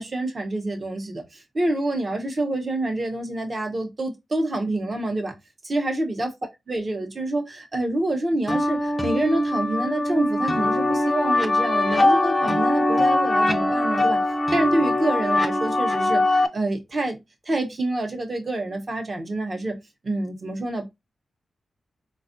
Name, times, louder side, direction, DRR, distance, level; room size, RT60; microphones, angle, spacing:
voice 1, 0.0-5.3 5.6-6.3 6.7-14.2 14.5-17.2 17.5-19.8 20.0-20.8, right 1 dB, 35° right, 0.7 m, -27 dB
sound 1, 8.5-16.5, left 1 dB, 20° left, 0.4 m, -22 dB
4.2 x 2.3 x 2.5 m
wide cardioid pair, 130°, 0 cm